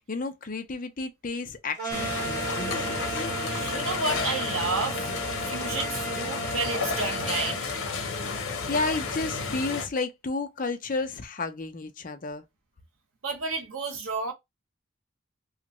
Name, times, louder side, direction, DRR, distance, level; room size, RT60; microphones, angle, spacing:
voice 1, 0.1-3.2 8.7-12.4, left 3 dB, 40° left, 0.5 m, -32 dB
sound 1, 1.8-7.6, right 4 dB, 45° right, 1.5 m, -36 dB
sound 2, 1.9-9.9, left 4 dB, 90° left, 0.8 m, -31 dB
voice 2, 3.5-5.1 5.5-7.6 13.2-14.3, right 3 dB, 85° right, 0.9 m, -31 dB
2.9 x 2.4 x 3.0 m
head